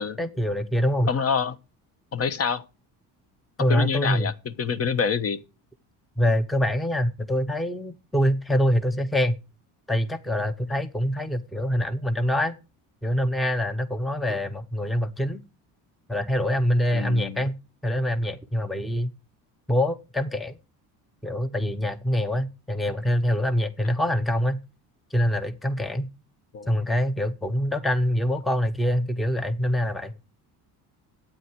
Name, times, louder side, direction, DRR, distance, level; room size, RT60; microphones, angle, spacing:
voice 1, 0.2-1.1 3.6-4.3 6.2-9.4 9.9-12.5 13.0-15.4 16.1-17.5 17.8-19.1 19.7-20.6 21.2-24.6 25.1-26.1 26.7-30.1, equal, ahead, 0.8 m, -25 dB
voice 2, 1.1-1.5 2.1-2.6 3.7-5.4 16.9-17.4 26.5-26.7, left 6 dB, 35° left, 1.2 m, -26 dB
12.5 x 9.0 x 4.7 m
cardioid pair, 140°, 39 cm